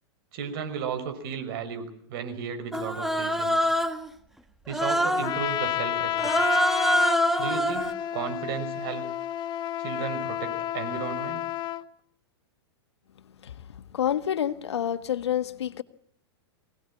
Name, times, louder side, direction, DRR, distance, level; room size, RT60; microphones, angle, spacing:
voice 1, 0.3-3.7 4.7-6.3 7.4-9.0 9.8-11.4, right 6 dB, 55° right, 5.8 m, -34 dB
Human voice, 2.7-4.1 4.7-5.4 6.2-7.9, equal, ahead, 1.6 m, -25 dB
Trumpet, 5.2-11.8, left 11 dB, 30° left, 1.2 m, -31 dB
voice 2, 13.4-15.8, left 10 dB, 80° left, 1.6 m, -29 dB
23.5 x 18.5 x 9.0 m
hypercardioid pair, 120°, 14 cm